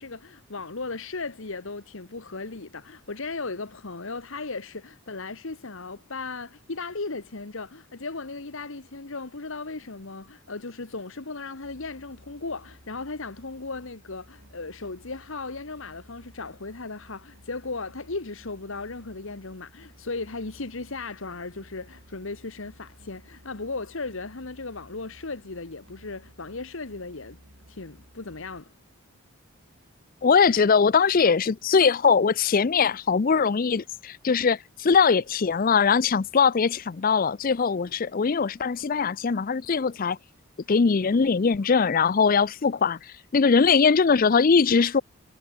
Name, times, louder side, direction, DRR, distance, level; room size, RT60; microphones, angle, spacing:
voice 1, 0.0-27.4 27.7-28.7, left 3 dB, 60° left, 1.3 m, -36 dB
Musical instrument, 11.6-28.6, equal, 65° right, 6.9 m, -55 dB
voice 2, 30.2-40.2 40.7-45.0, left 5 dB, 40° left, 0.4 m, -21 dB
head